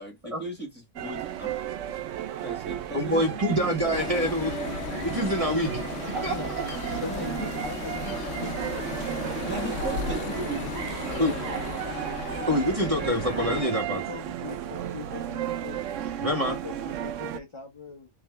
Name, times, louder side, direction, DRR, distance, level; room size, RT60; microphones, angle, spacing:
voice 1, 0.0-1.5 2.4-4.7 7.0-7.3 8.4-8.5 9.4-11.9, equal, 10° left, 1.9 m, -38 dB
sound 1, 1.0-17.4, right 10 dB, 80° right, 1.0 m, -33 dB
voice 2, 2.9-4.6 5.0-5.8 6.2-6.3 11.2-11.3 12.5-14.0 16.2-16.6, equal, 30° right, 1.6 m, -26 dB
sound 2, 3.9-13.6, left 6 dB, 70° left, 0.9 m, -36 dB
voice 3, 6.1-6.5 6.9-9.1 9.4-9.8 10.1-10.6 11.1-12.5 13.5-15.8 16.4-18.1, left 4 dB, 30° left, 0.8 m, -41 dB
3.6 x 3.3 x 3.3 m
omnidirectional pair, 1.3 m